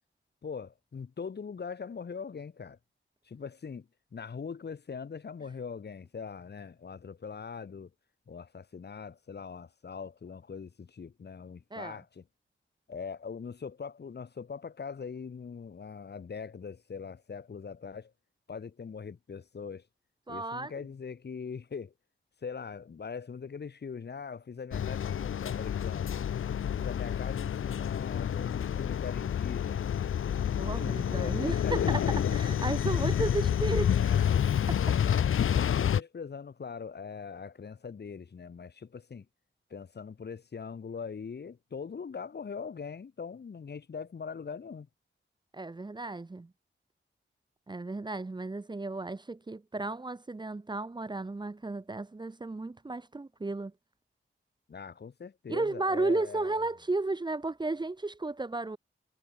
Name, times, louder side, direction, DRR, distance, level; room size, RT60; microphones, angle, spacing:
voice 1, 0.4-2.8 3.2-7.9 8.3-12.2 12.9-18.1 18.5-19.8 20.3-21.9 22.4-26.2 26.7-29.9 30.8-32.1 32.8-33.4 33.9-34.5 34.9-39.3 39.7-44.9 54.7-56.7, left 6 dB, 55° left, 3.3 m, -41 dB
voice 2, 20.3-20.7 30.6-34.0 45.5-46.5 47.7-53.7 55.5-58.8, right 2 dB, 20° right, 1.4 m, -34 dB
sound 1, 24.7-36.0, left 9 dB, 85° left, 0.7 m, -29 dB
wide cardioid pair, 175°, 21 cm